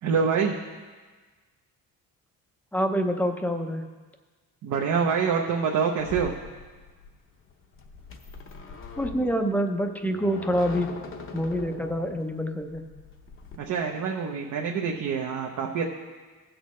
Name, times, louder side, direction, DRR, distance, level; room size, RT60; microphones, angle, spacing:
voice 1, 0.0-0.6 4.6-6.3 13.6-15.8, right 6 dB, 55° right, 0 dB, 0.9 m, -26 dB
voice 2, 2.7-3.9 9.0-10.9 11.3-12.8, equal, 5° left, 5 dB, 0.6 m, -26 dB
sound 1, 6.0-13.6, left 5 dB, 35° left, 0.8 m, -42 dB
16.5 x 6.4 x 3.1 m, 1.4 s
cardioid pair, 145°, 34 cm